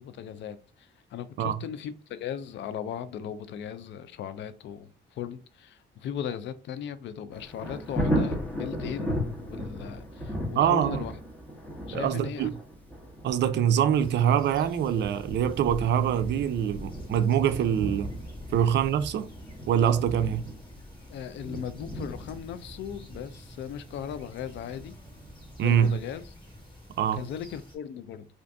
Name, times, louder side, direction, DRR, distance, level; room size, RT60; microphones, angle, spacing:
voice 1, 0.0-11.1 11.9-12.5 21.1-24.9 25.6-26.2 27.1-28.3, left 9 dB, 65° left, 0.4 m, -38 dB
Thunder, 7.3-26.1 26.5-26.6, equal, 5° left, 0.9 m, -36 dB
voice 2, 10.6-11.0 11.9-12.5 13.2-18.1 18.5-19.3 19.7-20.5 25.6-26.0 27.0-27.2, right 9 dB, 60° right, 0.4 m, -24 dB
sound 1, 13.9-27.8, left 1 dB, 25° left, 1.3 m, -47 dB
2.5 x 2.5 x 3.4 m
cardioid pair, 90°, 20 cm